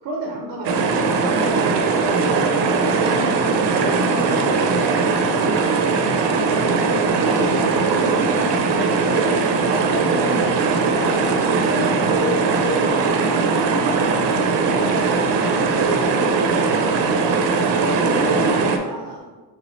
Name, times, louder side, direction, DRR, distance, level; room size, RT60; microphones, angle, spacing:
voice 1, 0.0-1.1 3.4-4.7 6.6-8.7 9.0-15.1 15.4-16.8 17.1-19.3, right 2 dB, 55° right, -1 dB, 0.7 m, -30 dB
sound 1, 0.6-18.8, right 4 dB, 90° right, 0.6 m, -19 dB
voice 2, 1.4-2.6 3.4-4.0 4.7-4.9 8.7-9.0, left 2 dB, 45° left, -3 dB, 0.6 m, -35 dB
4.1 x 3.4 x 3.0 m, 1.3 s
cardioid pair, 140°, 41 cm